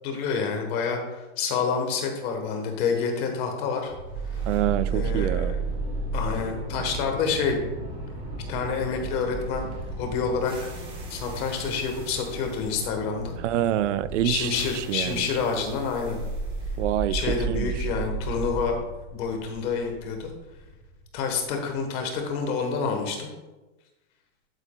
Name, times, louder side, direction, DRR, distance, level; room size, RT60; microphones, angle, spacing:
voice 1, 0.0-3.9 4.9-5.6 6.1-7.6 8.5-9.6 10.0-10.7 11.1-13.3 14.2-16.2 17.1-18.8 19.1-20.3 21.1-23.3, left 5 dB, 25° left, 4 dB, 1.2 m, -28 dB
sound 1, 3.9-22.0, right 4 dB, 15° right, 1.2 m, -33 dB
voice 2, 4.5-5.6 13.4-15.3 16.8-17.8, right 12 dB, 80° right, 15 dB, 0.5 m, -27 dB
11.5 x 8.1 x 2.2 m, 1.1 s
supercardioid pair, 170°, 35 cm